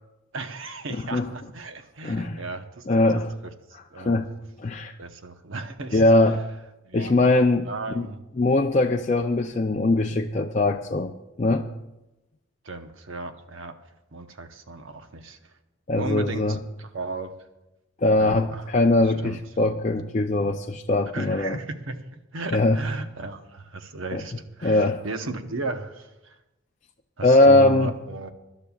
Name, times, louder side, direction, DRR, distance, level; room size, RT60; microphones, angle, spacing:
voice 1, 0.3-4.2 5.0-6.3 6.8-7.1 7.7-8.2 12.6-13.7 14.1-15.4 16.0-17.3 18.2-18.7 19.0-19.4 21.1-21.9 22.3-26.4 27.2-28.3, right 3 dB, 75° right, 7 dB, 1.0 m, -35 dB
voice 2, 2.0-2.4 2.9-3.3 4.0-4.3 4.6-4.9 5.9-6.4 6.9-8.1 8.4-11.1 11.4-11.7 15.9-16.6 18.0-21.6 22.5-22.8 24.1-24.2 24.6-25.0 27.2-27.9, left 2 dB, 35° left, 2 dB, 0.4 m, -21 dB
23.5 x 12.0 x 2.4 m, 0.95 s
head